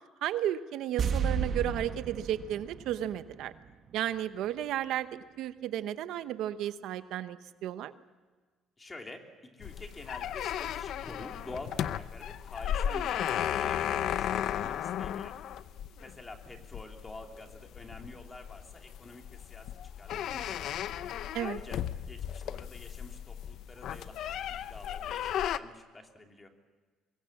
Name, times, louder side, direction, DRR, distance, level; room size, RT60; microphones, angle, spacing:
voice 1, 0.2-3.5 3.9-5.1 5.4-7.9 21.3-21.6, right 11 dB, 70° right, 12 dB, 0.9 m, -33 dB
sound 1, 1.0-4.2 4.4-4.5, right 6 dB, 40° right, 1.5 m, -33 dB
voice 2, 8.8-15.4 16.0-20.8 21.4-21.8 22.1-26.5, left 2 dB, 20° left, 3 dB, 2.8 m, -48 dB
sound 2, 9.6-25.6, left 10 dB, 60° left, 0.7 m, -35 dB
23.5 x 22.5 x 7.3 m, 1.4 s
cardioid pair, 135°, 0 cm